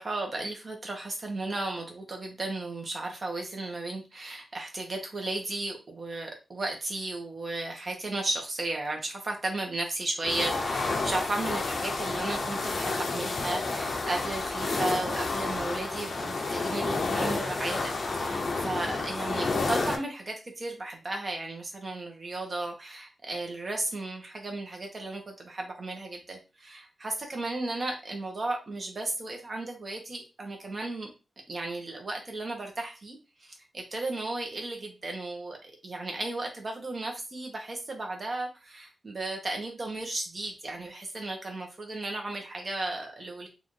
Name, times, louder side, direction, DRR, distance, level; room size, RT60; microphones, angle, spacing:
voice 1, 0.0-17.9 18.2-31.1 31.5-43.5, right 2 dB, 35° right, 2 dB, 1.1 m, -35 dB
sound 1, 10.2-20.0, left 3 dB, 50° left, 0.6 m, -30 dB
4.0 x 2.5 x 3.2 m, 0.29 s
wide cardioid pair, 160°, 0 cm